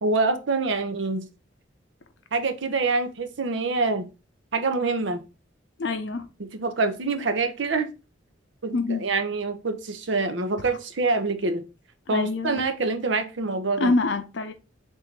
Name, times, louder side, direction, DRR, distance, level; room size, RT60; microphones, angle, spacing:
voice 1, 0.0-1.3 2.3-4.1 4.5-5.2 6.4-7.9 8.6-11.7 12.1-13.9, right 3 dB, 80° right, 0.7 m, -26 dB
voice 2, 5.8-6.3 8.7-9.1 12.1-12.6 13.8-14.5, left 3 dB, 70° left, 0.6 m, -25 dB
3.7 x 2.6 x 4.5 m
head